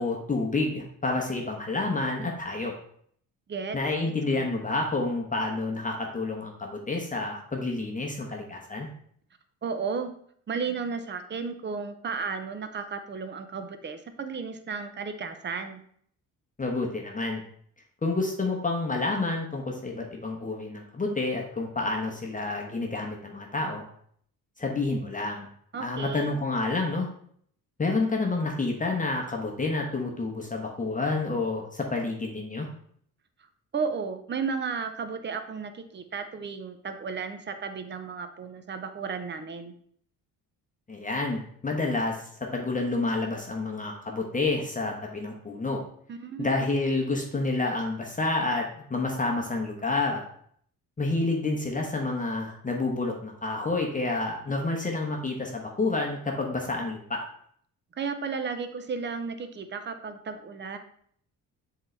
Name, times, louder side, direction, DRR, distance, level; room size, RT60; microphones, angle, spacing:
voice 1, 0.0-2.7 3.7-8.9 16.6-17.4 18.0-23.9 24.6-25.5 25.8-27.1 27.8-32.7 40.9-45.8 46.4-50.2 51.0-57.2, left 3 dB, 20° left, 0 dB, 1.1 m, -29 dB
voice 2, 4.3-4.6 9.6-10.1 10.5-15.8 25.7-26.3 33.7-39.8 46.1-46.5 58.0-60.8, right 5 dB, 30° right, 9 dB, 0.7 m, -34 dB
7.1 x 4.0 x 3.3 m, 0.63 s
cardioid pair, 90°, 36 cm